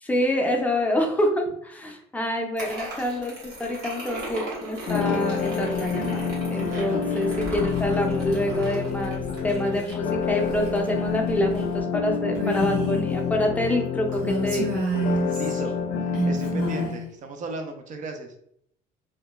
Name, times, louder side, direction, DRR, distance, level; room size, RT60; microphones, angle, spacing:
voice 1, 0.0-14.7, left 1 dB, 10° left, 1 dB, 0.5 m, -27 dB
sound 1, 2.6-11.8, right 1 dB, 90° right, 1.1 m, -38 dB
sound 2, 4.9-16.9, left 6 dB, 80° left, 0.5 m, -28 dB
voice 2, 6.6-7.1 15.4-18.4, right 3 dB, 45° right, 5 dB, 0.5 m, -36 dB
Female speech woman speaking, 12.3-13.0 14.1-15.6 16.1-17.0, right 2 dB, 60° right, 1.2 m, -28 dB
2.2 x 2.1 x 2.9 m, 0.69 s
cardioid pair, 110°, 17 cm